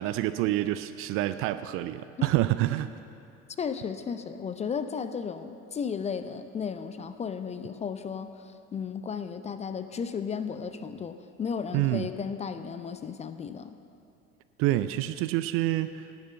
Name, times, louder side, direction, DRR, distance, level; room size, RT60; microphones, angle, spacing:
voice 1, 0.0-2.9 11.7-12.1 14.6-16.1, right 15 dB, 35° right, 12 dB, 0.4 m, -27 dB
voice 2, 3.6-13.8, left 6 dB, 15° left, 11 dB, 0.5 m, -34 dB
18.0 x 7.4 x 7.7 m, 2.5 s
figure-of-eight pair, 70°, 40 cm